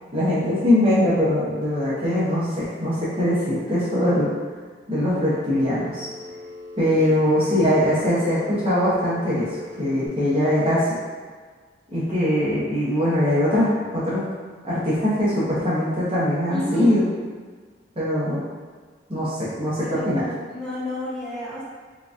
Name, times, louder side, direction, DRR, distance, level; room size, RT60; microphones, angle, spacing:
voice 1, 0.1-4.3 4.9-6.1 6.8-9.5 9.8-10.9 11.9-14.2 14.6-17.0 18.0-18.4 19.1-20.2, left 1 dB, 30° right, -10 dB, 0.8 m, -21 dB
Telephone, 5.1-10.1, left 2 dB, 65° right, 1.4 m, -40 dB
voice 2, 16.5-17.2 19.8-21.6, equal, 5° left, -12 dB, 0.9 m, -31 dB
3.8 x 2.3 x 2.5 m, 1.5 s
head